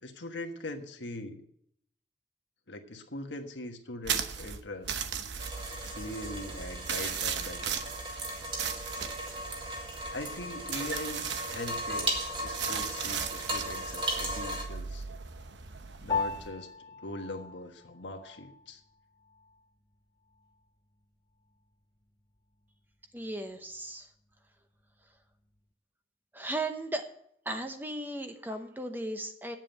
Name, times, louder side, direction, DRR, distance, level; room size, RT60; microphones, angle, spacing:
voice 1, 0.0-1.4 2.7-5.0 5.9-7.8 10.1-15.0 16.0-16.7 17.0-18.8, left 1 dB, 90° left, 4 dB, 1.5 m, -41 dB
sound 1, 4.0-16.5, right 7 dB, 85° right, 0.9 m, -37 dB
sound 2, 5.4-14.6, right 1 dB, 30° right, 2.0 m, -37 dB
Piano, 16.1-25.7, left 5 dB, 25° left, 0.6 m, -41 dB
voice 2, 23.1-24.1 26.3-27.1 27.4-29.6, right 1 dB, 10° right, 6 dB, 0.9 m, -36 dB
9.2 x 7.6 x 9.0 m, 0.71 s
head